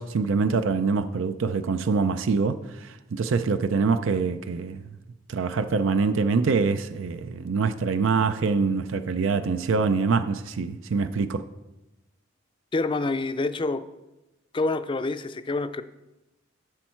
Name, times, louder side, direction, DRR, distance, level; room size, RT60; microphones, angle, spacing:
voice 1, 0.0-4.8 5.3-11.4, right 4 dB, 85° right, 0.5 m, -25 dB
voice 2, 12.7-13.8 14.5-15.8, left 3 dB, 25° left, 0.4 m, -27 dB
11.5 x 6.3 x 4.5 m
head